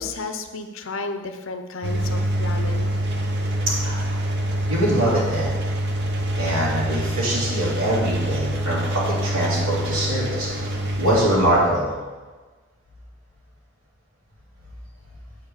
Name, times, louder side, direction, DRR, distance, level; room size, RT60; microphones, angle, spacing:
voice 1, 0.0-2.9, left 3 dB, 65° left, 8 dB, 0.6 m, -32 dB
Engine, 1.8-11.2, right 1 dB, 50° right, 0.9 m, -25 dB
voice 2, 3.7-4.1 4.7-5.5 6.4-11.9, right 1 dB, 85° right, -8 dB, 3.0 m, -23 dB
8.0 x 4.7 x 7.0 m, 1.3 s
head